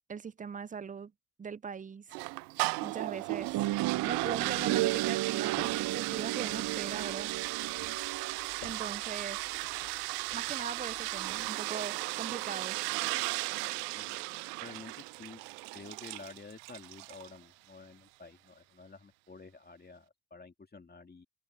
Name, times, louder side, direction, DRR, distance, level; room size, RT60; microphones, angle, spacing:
voice 1, 0.1-1.1 1.4-2.1 2.8-3.7 4.0-7.3 8.6-9.4 10.3-12.8, right 6 dB, 15° right, 0.6 m, -40 dB
sound 1, 2.1-17.4, right 29 dB, 70° right, 0.6 m, -36 dB
sound 2, 3.4-11.5, left 40 dB or more, 70° left, 4.2 m, -56 dB
sound 3, 3.5-8.6, right 15 dB, 45° right, 0.8 m, -34 dB
voice 2, 13.9-14.3 14.6-15.4 15.7-21.3, left 4 dB, 20° left, 2.2 m, -50 dB
hypercardioid pair, 55°, 49 cm